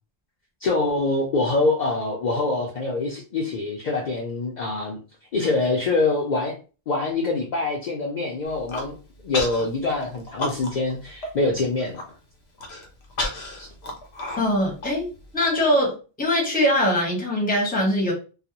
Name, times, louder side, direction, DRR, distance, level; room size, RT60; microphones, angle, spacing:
voice 1, 0.6-5.0 5.3-6.5 6.9-8.9 9.2-12.0 13.6-13.7, left 3 dB, 55° left, -1 dB, 0.5 m, -25 dB
Human voice, 8.5-8.9 9.3-9.6 10.0-10.9 11.2-11.3 11.7-12.0 12.6-15.4, left 2 dB, 85° left, 0.9 m, -31 dB
voice 2, 14.4-15.1 15.3-15.9 16.2-18.1, left 1 dB, 10° left, -1 dB, 0.7 m, -22 dB
2.3 x 2.1 x 2.8 m, 0.34 s
omnidirectional pair, 1.0 m